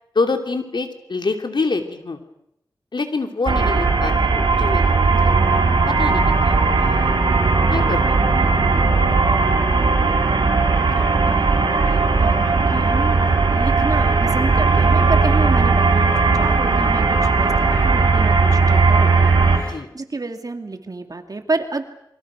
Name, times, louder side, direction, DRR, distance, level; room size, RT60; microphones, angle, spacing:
voice 1, 0.1-2.2 2.9-7.1 7.7-8.5 19.7-19.9, left 3 dB, 70° left, 5 dB, 2.9 m, -26 dB
sound 1, 3.5-19.6, right 4 dB, 80° right, 5.0 m, -17 dB
voice 2, 10.0-10.4 10.7-13.2 13.5-21.8, right 3 dB, 50° right, 6 dB, 2.4 m, -30 dB
28.0 x 24.0 x 6.3 m, 0.76 s
wide cardioid pair, 80°, 8 cm